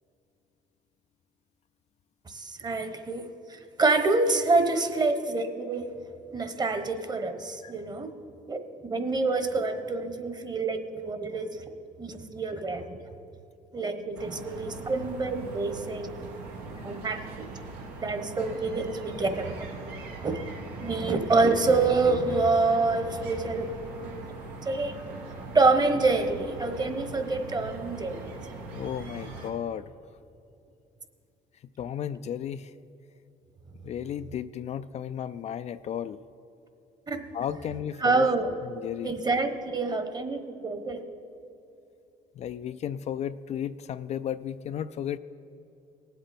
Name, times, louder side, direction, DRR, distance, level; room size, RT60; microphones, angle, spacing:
voice 1, 2.3-5.9 6.3-8.1 8.5-8.6 8.9-11.6 12.0-13.0 13.7-16.2 16.8-17.5 18.0-19.5 20.2-20.4 20.8-24.2 24.6-25.0 25.5-28.4 37.1-37.2 38.0-38.5 39.0-41.0, right 3 dB, 25° right, 8 dB, 1.1 m, -27 dB
sound 1, 14.1-29.5, right 3 dB, 90° right, 1.7 m, -41 dB
voice 2, 28.7-29.9 31.8-32.7 33.8-36.2 37.3-39.1 42.4-45.2, left 9 dB, 45° left, 12 dB, 0.4 m, -34 dB
18.5 x 7.9 x 4.3 m, 2.8 s
supercardioid pair, 85°, 15 cm